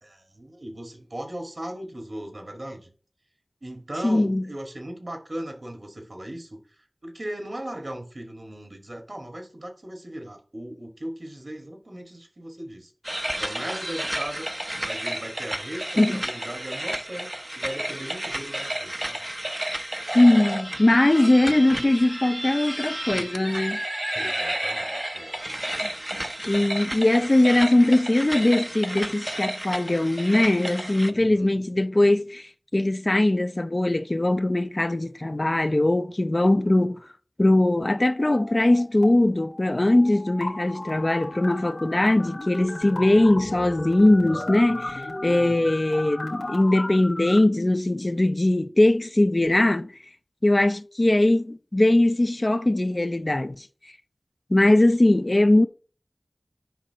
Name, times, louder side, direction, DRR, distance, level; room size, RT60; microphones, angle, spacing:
voice 1, 0.0-2.9 3.6-6.6 7.0-12.9 13.4-14.4 14.8-19.2 24.1-25.4 25.7-25.9 31.1-31.6 45.2-45.7, right 1 dB, 60° right, 1.7 m, -38 dB
voice 2, 4.0-4.4 16.0-16.2 20.1-23.8 25.8-25.9 26.4-37.0 37.4-49.9 50.4-53.6 54.5-55.7, left 1 dB, 45° left, 0.5 m, -21 dB
sound 1, 13.0-31.1, right 1 dB, 25° right, 0.6 m, -32 dB
sound 2, 38.1-39.1 39.4-47.4, left 2 dB, 80° left, 1.8 m, -35 dB
10.0 x 5.3 x 2.9 m
wide cardioid pair, 45°, 0 cm